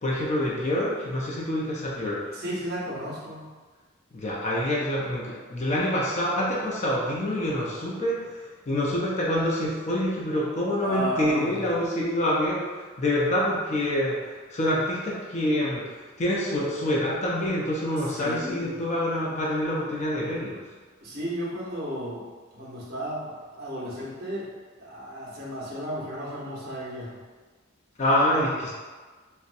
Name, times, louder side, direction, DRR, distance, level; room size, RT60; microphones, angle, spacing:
voice 1, 0.0-2.4 4.1-12.6 13.0-14.2 14.5-15.8 16.2-20.6 28.0-28.7, left 1 dB, 35° left, -4 dB, 0.4 m, -26 dB
voice 2, 2.3-3.5 10.8-11.6 18.2-18.8 21.0-22.2 22.5-24.5 24.8-27.1, equal, 50° right, -7 dB, 1.0 m, -33 dB
3.9 x 2.1 x 2.6 m, 1.4 s
head